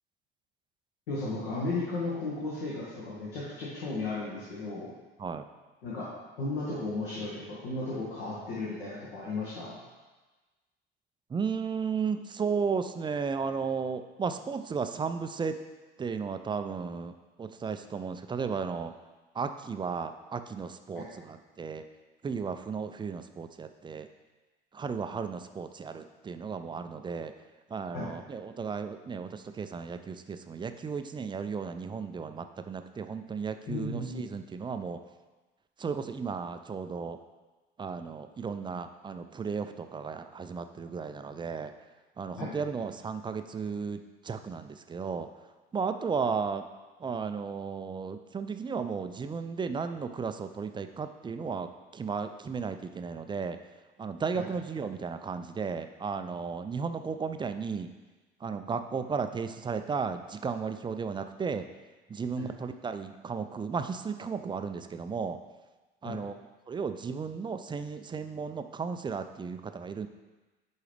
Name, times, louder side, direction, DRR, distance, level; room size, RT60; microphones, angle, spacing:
voice 1, 1.1-4.9 5.8-6.1 6.4-9.8 20.9-21.1 27.9-28.1 33.7-34.2 42.4-42.5 54.3-54.5 62.4-62.5 66.0-66.2, left 2 dB, 65° left, -7 dB, 1.8 m, -35 dB
voice 2, 11.3-15.6 16.0-17.1 17.4-18.9 19.4-21.8 22.2-24.1 24.7-27.3 27.7-35.0 35.8-37.2 37.8-41.7 42.2-45.3 45.7-46.6 47.0-53.6 54.0-57.9 58.4-61.7 62.1-65.4 66.0-66.3 66.7-70.1, right 5 dB, 15° right, 8 dB, 0.4 m, -34 dB
10.5 x 4.6 x 3.3 m, 1.2 s
figure-of-eight pair, 60°, 30 cm